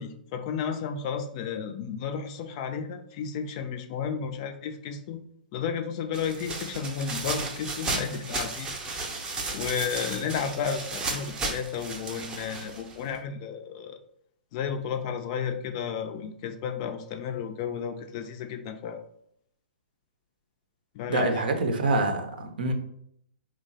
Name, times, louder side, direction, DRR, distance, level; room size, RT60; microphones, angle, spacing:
voice 1, 0.0-5.2 5.5-9.0 9.5-14.0 14.5-19.0 20.9-21.5, left 7 dB, 40° left, 7 dB, 0.4 m, -33 dB
sound 1, 6.1-13.2, right 3 dB, 15° right, 0.6 m, -34 dB
voice 2, 21.1-22.7, right 2 dB, 65° right, 5 dB, 0.6 m, -26 dB
2.9 x 2.0 x 4.0 m, 0.71 s
figure-of-eight pair, 120°, 5 cm